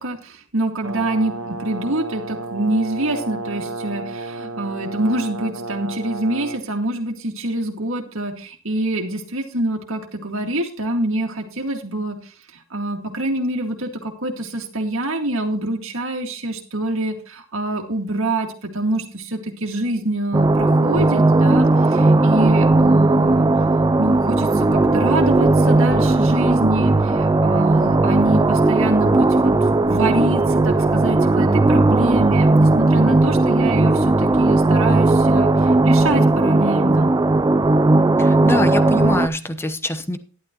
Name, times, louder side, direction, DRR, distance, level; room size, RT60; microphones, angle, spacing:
voice 1, 0.0-12.2 12.7-23.5 24.0-37.1, right 1 dB, 65° right, 3 dB, 2.1 m, -25 dB
Brass instrument, 0.8-6.6, right 2 dB, 85° right, 0.9 m, -32 dB
sound 1, 20.3-39.3, right 2 dB, 20° right, 0.4 m, -16 dB
voice 2, 38.2-40.2, left 1 dB, 10° left, 10 dB, 0.9 m, -24 dB
12.0 x 11.0 x 3.0 m, 0.38 s
head